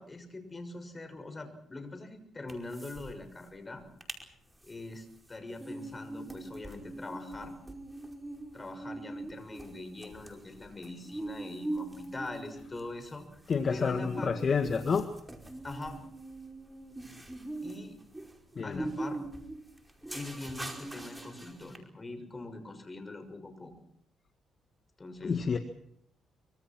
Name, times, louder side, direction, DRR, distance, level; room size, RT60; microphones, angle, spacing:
voice 1, 0.0-3.8 4.6-7.5 8.5-13.4 13.7-14.3 15.6-16.0 17.6-18.0 18.6-19.2 20.1-23.7 25.0-25.6, left 2 dB, 25° left, 7 dB, 6.4 m, -43 dB
sound 1, 2.5-3.1 3.4-3.5 3.8-4.2 4.6-21.8, right 2 dB, 10° right, 5.1 m, -42 dB
voice 2, 13.5-15.1 18.6-18.9 25.2-25.6, left 5 dB, 45° left, 7 dB, 1.8 m, -29 dB
25.5 x 24.0 x 6.1 m, 0.72 s
cardioid pair, 90°, 0 cm